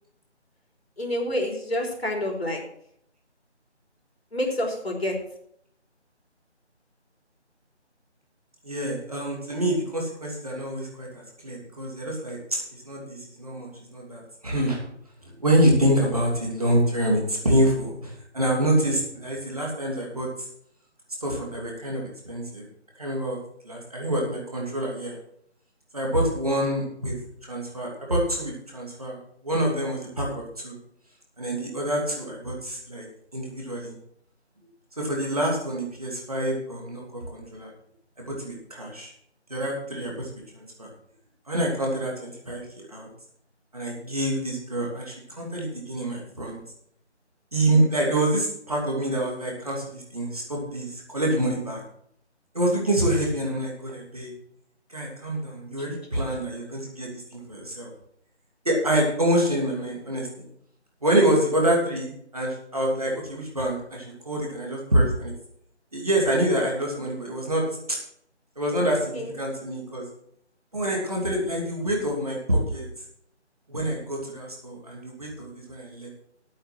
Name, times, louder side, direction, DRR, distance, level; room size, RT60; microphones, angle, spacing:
voice 1, 1.0-2.6 4.3-5.2 69.1-69.3, left 1 dB, 60° left, 1 dB, 3.6 m, -28 dB
voice 2, 8.6-14.9 15.2-20.3 21.2-22.6 23.0-23.4 23.6-25.2 25.9-27.1 27.4-29.2 29.4-30.8 31.4-33.1 33.3-34.0 35.0-37.7 38.2-39.1 39.5-40.3 40.5-40.9 41.5-43.1 43.7-46.6 47.5-51.8 52.5-54.3 54.9-57.9 58.6-60.5 61.0-65.3 65.9-67.6 67.9-68.0 68.6-70.0 70.7-72.8 73.7-76.1, right 1 dB, 30° right, -2 dB, 2.7 m, -26 dB
9.8 x 8.7 x 6.0 m, 0.69 s
figure-of-eight pair, 180°, 35 cm